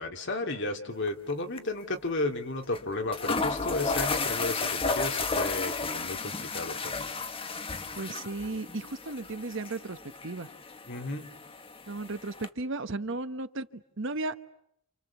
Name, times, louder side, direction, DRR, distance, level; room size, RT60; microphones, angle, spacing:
voice 1, 0.0-7.1 10.9-11.2, left 2 dB, 60° left, 4 dB, 2.7 m, -33 dB
sound 1, 1.1-1.3 1.6-1.7 2.7-2.8 3.1-12.5, left 4 dB, 25° left, 1.2 m, -33 dB
voice 2, 8.0-10.0 10.2-10.5 11.9-14.5, right 2 dB, 65° right, 12 dB, 1.1 m, -35 dB
29.5 x 28.5 x 7.2 m, 0.73 s
head